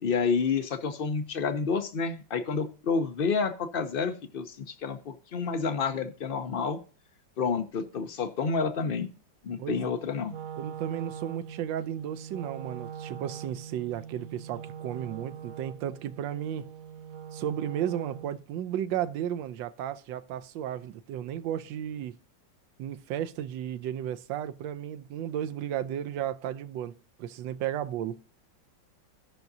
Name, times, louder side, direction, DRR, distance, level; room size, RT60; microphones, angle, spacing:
voice 1, 0.0-6.8 7.4-9.1 9.4-10.3, left 5 dB, 85° left, 0.4 m, -29 dB
voice 2, 9.6-9.9 10.6-16.7 17.3-22.2 22.8-28.2, right 10 dB, 85° right, 1.3 m, -34 dB
Wind instrument woodwind instrument, 10.2-18.5, right 8 dB, 60° right, 1.0 m, -42 dB
17.5 x 5.9 x 2.6 m
omnidirectional pair, 2.0 m